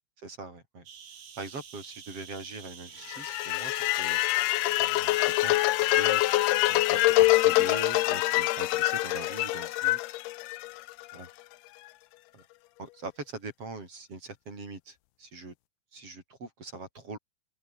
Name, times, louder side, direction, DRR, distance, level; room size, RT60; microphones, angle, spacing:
voice 1, 0.2-0.8 1.4-4.2 4.8-6.2 6.7-10.2 11.1-11.3 12.3-12.4 12.8-15.5 15.9-17.2, right 3 dB, 35° right, 9.0 m, -42 dB
sound 1, 0.9-9.9, right 7 dB, 80° right, 6.2 m, -51 dB
sound 2, 3.1-11.2, left 19 dB, 80° left, 2.7 m, -25 dB
open air
omnidirectional pair, 4.8 m